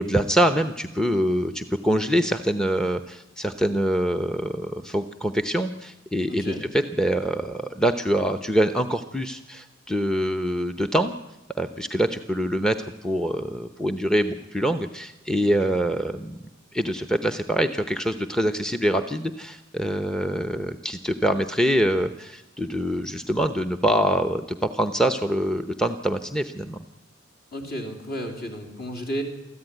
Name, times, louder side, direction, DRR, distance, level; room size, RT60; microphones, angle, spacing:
voice 1, 0.0-11.2 11.6-16.4 16.7-26.8, equal, 5° left, 8 dB, 0.7 m, -25 dB
voice 2, 6.3-6.6 15.4-15.7 27.5-29.2, equal, 50° left, 4 dB, 3.7 m, -33 dB
23.0 x 14.5 x 9.2 m, 1.1 s
head